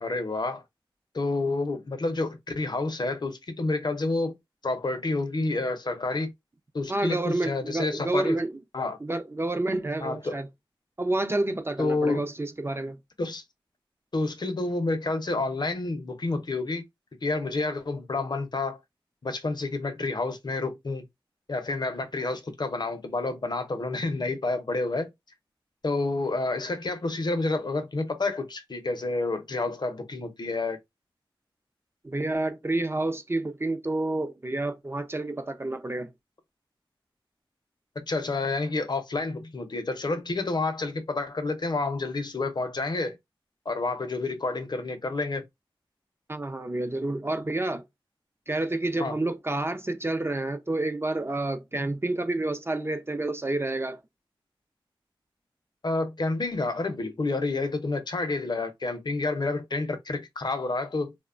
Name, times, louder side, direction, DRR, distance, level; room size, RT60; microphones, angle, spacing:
voice 1, 0.0-0.6 1.1-4.4 4.6-6.3 6.7-8.4 8.7-9.0 10.0-10.4 11.8-12.3 13.2-13.4 14.1-16.8 17.2-18.8 19.2-21.1 21.5-25.1 25.8-30.8 38.0-43.2 43.7-45.5 49.0-49.2 55.8-61.1, left 3 dB, 50° left, 0.6 m, -29 dB
voice 2, 6.9-8.6 9.0-10.5 11.0-13.0 32.0-36.1 46.3-47.8 48.5-54.0, right 2 dB, 25° right, 0.4 m, -29 dB
2.9 x 2.1 x 2.4 m
wide cardioid pair, 75°, 9 cm